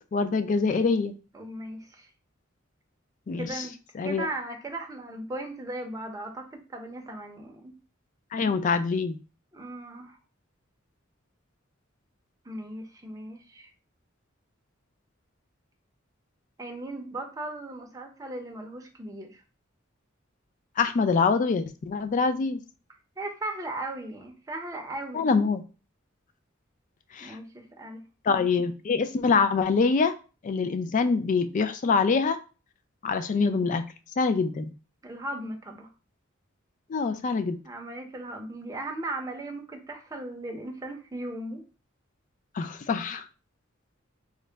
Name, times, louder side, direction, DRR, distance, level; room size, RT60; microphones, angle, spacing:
voice 1, 0.1-1.1 3.3-3.6 4.0-4.3 8.3-9.2 20.8-22.6 25.1-25.6 27.1-27.4 28.3-30.1 30.4-32.4 33.0-33.8 34.2-34.7 36.9-37.6 42.5-43.2, left 4 dB, 40° left, 10 dB, 0.3 m, -25 dB
voice 2, 1.3-2.1 3.4-3.7 4.0-7.7 9.5-10.2 12.4-13.7 16.6-19.4 23.2-25.3 27.2-28.0 35.0-35.9 37.6-41.6, right 2 dB, 15° right, 2 dB, 0.6 m, -37 dB
3.7 x 2.1 x 3.3 m, 0.34 s
head